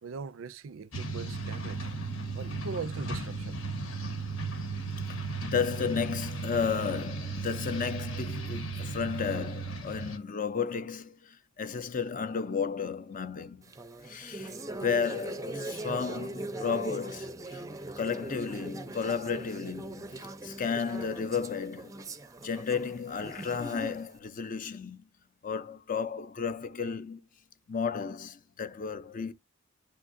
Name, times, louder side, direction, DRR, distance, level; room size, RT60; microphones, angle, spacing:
voice 1, 0.0-1.9 2.3-3.6, right 5 dB, 70° right, 0.4 m, -40 dB
sound 1, 0.9-10.2, right 3 dB, 80° left, 1.2 m, -36 dB
voice 2, 5.1-11.2 11.6-13.6 14.0-17.6 18.0-22.0 22.4-25.0 25.4-27.2 27.7-29.3, left 6 dB, 40° left, 0.5 m, -33 dB
sound 2, 13.6-24.1, right 2 dB, 15° right, 0.5 m, -40 dB
10.5 x 3.6 x 2.5 m
head